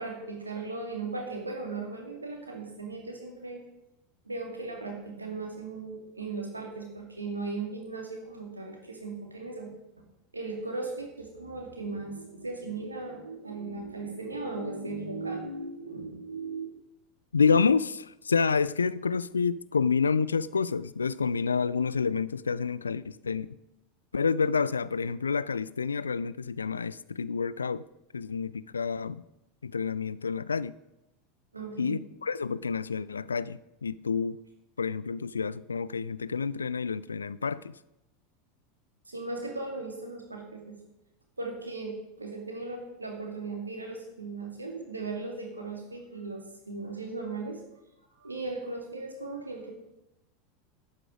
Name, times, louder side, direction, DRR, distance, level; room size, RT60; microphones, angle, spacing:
voice 1, 0.0-3.6 4.3-9.7 10.3-16.7 31.5-32.0 39.1-40.8 41.4-47.6 48.2-49.7, right 3 dB, 80° right, 1 dB, 2.4 m, -37 dB
voice 2, 17.3-23.5 24.1-27.8 28.1-29.2 29.6-30.7 31.8-34.4 34.8-37.7, left 5 dB, 75° left, 19 dB, 0.3 m, -28 dB
11.5 x 8.9 x 5.0 m, 0.91 s
figure-of-eight pair, 80°, 0 cm